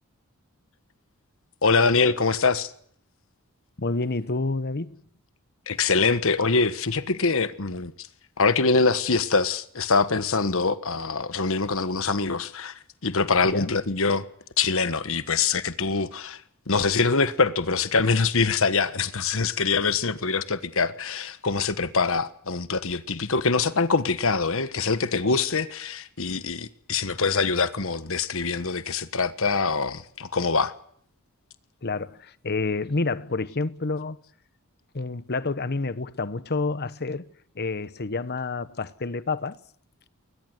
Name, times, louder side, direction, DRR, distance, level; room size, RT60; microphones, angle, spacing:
voice 1, 1.6-2.7 5.7-7.9 8.4-14.2 14.6-16.4 16.7-30.7, left 4 dB, 65° left, 1.4 m, -24 dB
voice 2, 3.8-5.0 13.4-13.7 31.8-34.2 34.9-37.3 37.5-39.6, left 3 dB, 50° left, 1.0 m, -29 dB
21.0 x 20.0 x 8.0 m
head